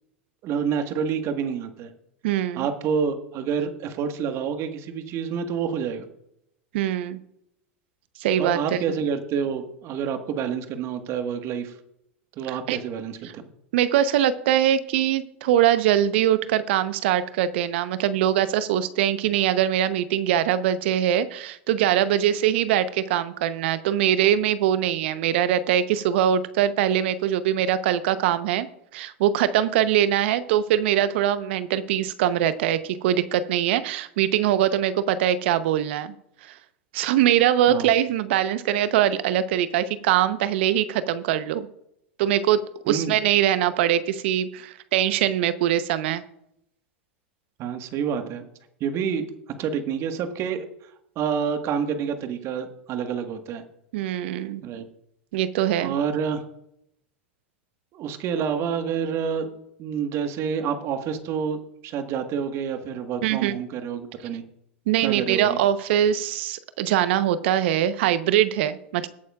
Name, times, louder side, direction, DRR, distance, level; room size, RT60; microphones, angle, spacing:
voice 1, 0.4-1.9 2.5-6.1 8.4-11.7 12.4-13.4 37.7-37.9 42.9-43.1 47.6-48.4 48.8-49.2 49.6-50.7 51.1-53.6 54.6-54.9 55.8-56.4 57.9-59.5 59.8-64.4 65.0-65.6, right 7 dB, 45° right, 7 dB, 1.5 m, -28 dB
voice 2, 2.2-2.7 6.7-7.2 8.2-8.8 12.5-12.8 13.7-28.7 28.9-36.1 36.4-36.5 36.9-41.7 42.2-46.2 53.9-54.6 55.3-55.9 63.2-63.5 64.9-69.1, right 11 dB, 65° right, 13 dB, 0.8 m, -22 dB
21.5 x 8.6 x 2.4 m, 0.79 s
hypercardioid pair, 95°, 7 cm